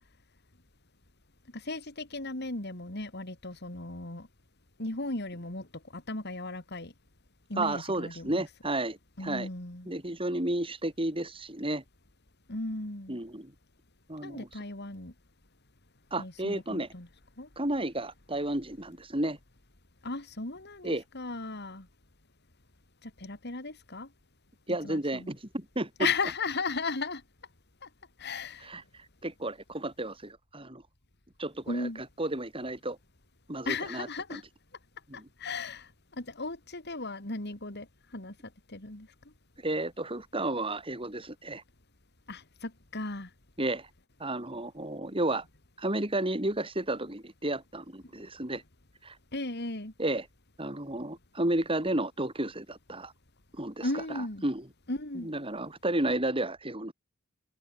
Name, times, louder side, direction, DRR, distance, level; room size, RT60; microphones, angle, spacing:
voice 1, 1.5-4.3 4.8-6.9 7.5-8.4 9.2-9.9 12.5-13.2 14.2-15.1 16.2-17.1 17.4-17.5 20.0-21.9 23.0-24.1 24.8-25.3 26.0-27.2 27.8-27.9 28.2-28.7 31.7-32.0 33.6-34.4 35.1-37.9 38.1-39.1 42.3-43.3 49.3-49.9 53.8-54.4 54.9-55.3, left 3 dB, 50° left, 3.2 m, -36 dB
voice 2, 7.6-9.5 9.9-11.8 13.1-13.5 14.1-14.5 16.1-16.9 17.6-19.4 20.8-21.0 24.7-26.1 28.6-28.8 29.2-30.8 31.4-31.9 32.2-33.0 33.5-34.4 35.1-35.3 39.6-41.6 43.6-43.9 44.2-45.4 45.8-48.6 49.0-49.2 50.0-50.2 50.6-53.1 53.5-53.9 54.4-54.6 55.2-56.9, right 1 dB, 25° right, 4.9 m, -32 dB
head